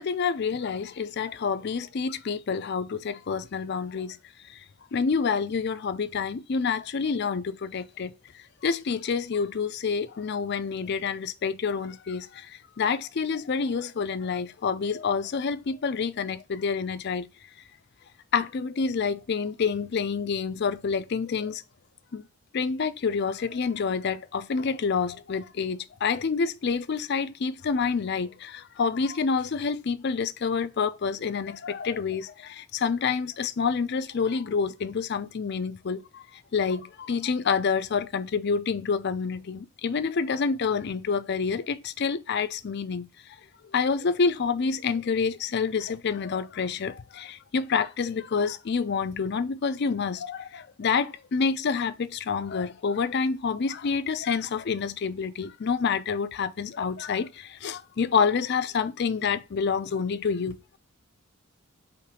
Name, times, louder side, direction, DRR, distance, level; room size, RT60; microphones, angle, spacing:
voice 1, 0.0-4.2 4.5-4.6 4.9-17.3 18.3-21.6 22.1-22.2 22.5-36.2 36.5-43.1 43.7-60.6, left 5 dB, 50° left, 0.4 m, -28 dB
3.4 x 3.1 x 4.6 m
head